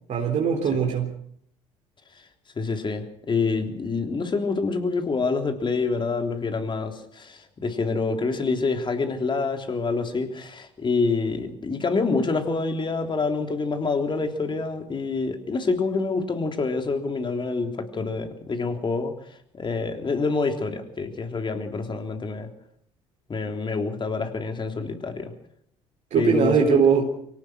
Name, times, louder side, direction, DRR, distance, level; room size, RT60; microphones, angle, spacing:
voice 1, 0.1-1.1 26.1-27.1, right 6 dB, 50° right, 1 dB, 3.8 m, -21 dB
voice 2, 2.6-19.1 19.5-22.5 23.3-25.3 26.2-26.8, left 4 dB, 30° left, 5 dB, 3.4 m, -27 dB
24.0 x 18.0 x 6.3 m, 0.66 s
hypercardioid pair, 60°, 15 cm